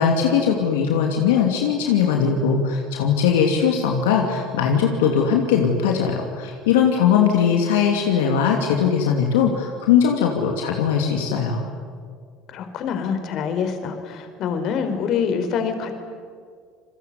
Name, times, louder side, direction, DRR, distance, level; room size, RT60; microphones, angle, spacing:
voice 1, 0.0-11.6, left 7 dB, 85° left, 2 dB, 2.9 m, -20 dB
voice 2, 12.5-15.9, left 6 dB, 55° left, 8 dB, 4.4 m, -25 dB
28.5 x 21.5 x 9.7 m, 2.1 s
hypercardioid pair, 85°, 0 cm